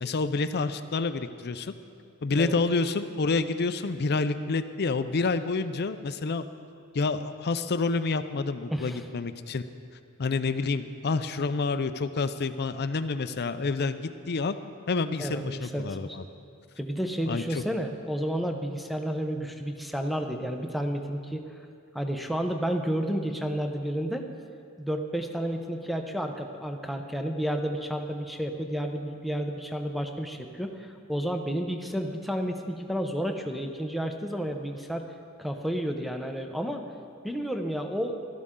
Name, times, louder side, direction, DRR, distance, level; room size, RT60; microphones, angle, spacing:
voice 1, 0.0-1.7 2.2-6.5 6.9-9.6 10.2-14.0 14.3-14.6 14.9-16.2 17.3-17.6, left 3 dB, 50° left, 11 dB, 0.5 m, -28 dB
voice 2, 8.7-9.0 15.2-16.2 16.8-21.4 21.9-24.3 24.8-35.1 35.4-36.8 37.2-38.2, equal, ahead, 5 dB, 0.8 m, -31 dB
16.5 x 13.0 x 3.8 m, 2.4 s
head